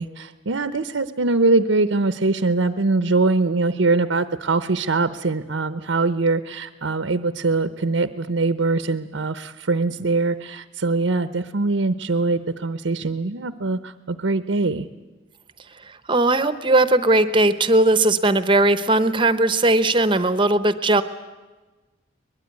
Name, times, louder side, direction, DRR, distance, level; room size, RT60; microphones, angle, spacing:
voice 1, 0.0-14.9, right 3 dB, 90° right, 12 dB, 0.8 m, -22 dB
voice 2, 15.8-21.0, right 2 dB, 25° right, 12 dB, 0.8 m, -18 dB
23.0 x 21.0 x 9.5 m, 1.2 s
head